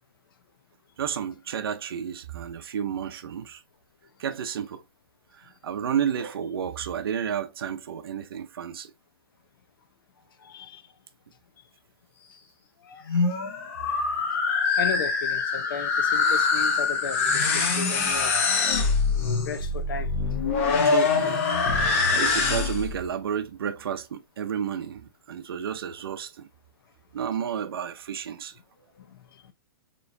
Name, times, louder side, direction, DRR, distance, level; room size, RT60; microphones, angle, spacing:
voice 1, 1.0-3.6 4.2-4.8 5.3-8.9 13.1-13.3 18.9-19.0 20.8-21.4 22.1-26.5 27.1-28.6, right 8 dB, 85° right, 0.6 m, -31 dB
voice 2, 10.4-10.8 14.8-17.3 17.5-18.4 19.5-20.1, left 6 dB, 70° left, 0.8 m, -34 dB
sound 1, 12.9-23.0, left 4 dB, 35° left, 0.8 m, -24 dB
4.3 x 3.1 x 2.6 m
hypercardioid pair, 180°, 12 cm